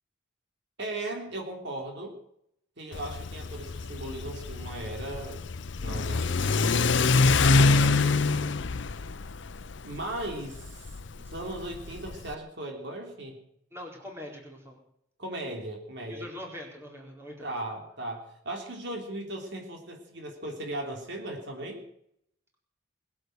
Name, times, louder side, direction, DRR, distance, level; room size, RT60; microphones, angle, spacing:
voice 1, 0.8-2.1 2.8-5.4 5.8-8.5 9.8-10.9 11.2-13.4 15.2-16.3 17.4-21.8, right 1 dB, 60° right, 1 dB, 3.5 m, -37 dB
Car / Accelerating revving vroom, 2.9-12.3, left 3 dB, 65° left, 0.7 m, -26 dB
voice 2, 13.7-14.8 16.1-17.5, left 1 dB, 15° right, -1 dB, 4.3 m, -42 dB
21.0 x 8.5 x 7.9 m, 0.74 s
head